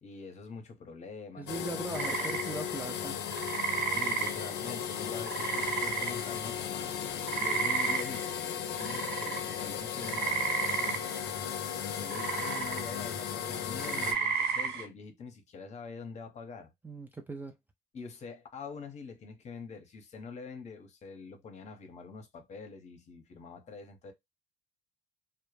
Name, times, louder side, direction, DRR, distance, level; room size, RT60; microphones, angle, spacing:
voice 1, 0.0-2.4 3.9-10.4 10.8-11.2 11.8-16.7 17.9-24.1, left 4 dB, 40° left, 0.7 m, -45 dB
voice 2, 1.4-3.2 16.8-17.5, right 2 dB, 10° right, 0.3 m, -39 dB
sound 1, 1.5-14.1, left 9 dB, 75° left, 0.5 m, -36 dB
sound 2, 1.9-6.6 6.9-14.9, right 5 dB, 75° right, 1.0 m, -34 dB
2.1 x 2.0 x 3.0 m
cardioid pair, 110°, 17 cm